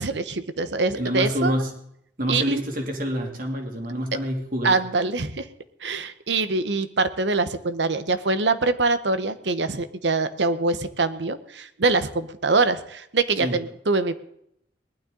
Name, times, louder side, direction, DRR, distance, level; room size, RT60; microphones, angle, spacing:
voice 1, 0.0-1.5 2.3-2.6 4.6-5.5 5.8-14.2, right 3 dB, 85° right, 12 dB, 1.0 m, -24 dB
voice 2, 0.9-1.7 2.2-4.8 13.4-13.6, equal, 50° right, 2 dB, 2.7 m, -27 dB
19.5 x 12.0 x 3.9 m, 0.72 s
head